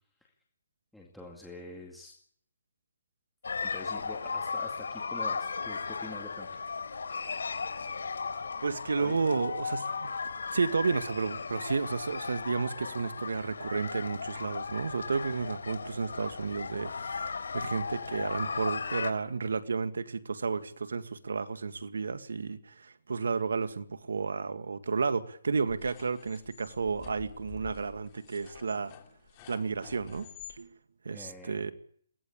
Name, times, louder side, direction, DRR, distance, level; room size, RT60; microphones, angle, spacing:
voice 1, 0.9-2.1 3.6-6.5 9.0-9.2 31.1-31.7, left 2 dB, ahead, 2.2 m, -46 dB
sound 1, 3.4-19.1, left 5 dB, 90° left, 3.8 m, -36 dB
voice 2, 8.6-10.1 10.5-28.9 29.5-30.7 31.0-31.7, right 4 dB, 85° right, 1.9 m, -32 dB
sound 2, 25.7-30.6, left 9 dB, 20° left, 2.9 m, -50 dB
22.5 x 18.0 x 8.7 m
hypercardioid pair, 175°, 0 cm